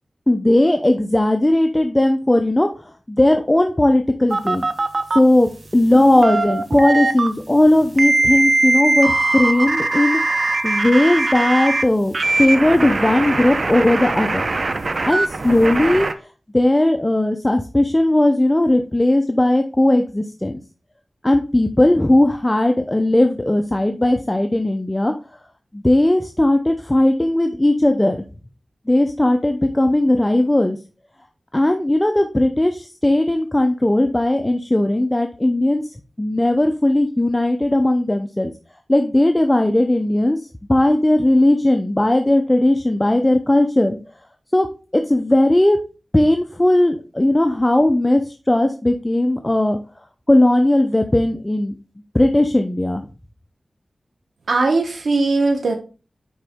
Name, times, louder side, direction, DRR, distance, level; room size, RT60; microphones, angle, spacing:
voice 1, 0.3-4.6 5.1-14.5 15.0-16.1 16.5-20.6 21.2-25.1 25.7-28.2 28.9-30.8 31.5-38.5 38.9-44.0 44.5-44.7 44.9-45.8 46.1-49.8 50.3-51.7 52.1-53.1, left 1 dB, 20° left, 5 dB, 0.6 m, -17 dB
sound 1, 4.3-5.2 5.9-7.3 8.0-11.8 12.1-16.1, right 2 dB, 60° right, 0.6 m, -21 dB
voice 2, 54.5-55.7, right 3 dB, 90° right, 3 dB, 1.0 m, -19 dB
9.5 x 3.9 x 3.5 m, 0.34 s
wide cardioid pair, 75°, 0 cm